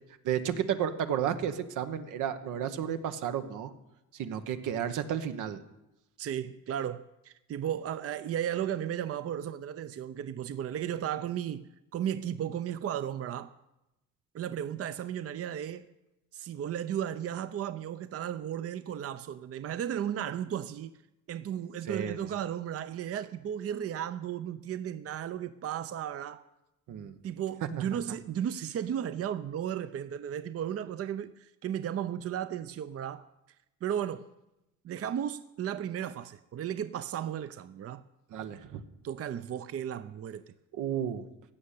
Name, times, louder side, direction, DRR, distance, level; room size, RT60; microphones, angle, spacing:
voice 1, 0.2-3.7 4.1-5.6 21.8-22.2 26.9-27.2 27.6-27.7 38.3-38.8 40.7-41.3, right 9 dB, 85° right, 1.1 m, -32 dB
voice 2, 6.2-13.5 14.3-15.9 16.3-21.0 21.3-26.5 27.2-33.3 33.8-34.3 34.8-38.0 39.0-40.4, right 10 dB, 50° right, 0.6 m, -35 dB
15.5 x 6.6 x 8.4 m
cardioid pair, 90°, 30 cm